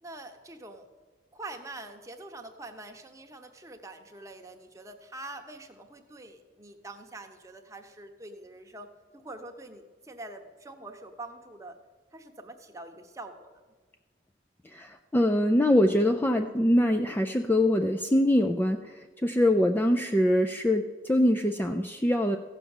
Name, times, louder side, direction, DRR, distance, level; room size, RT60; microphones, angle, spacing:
voice 1, 0.0-0.9 1.3-11.8 12.1-13.5, right 2 dB, 15° right, 4 dB, 0.9 m, -45 dB
voice 2, 14.7-22.4, left 1 dB, 10° left, 4 dB, 0.4 m, -24 dB
15.0 x 6.0 x 7.2 m, 1.4 s
head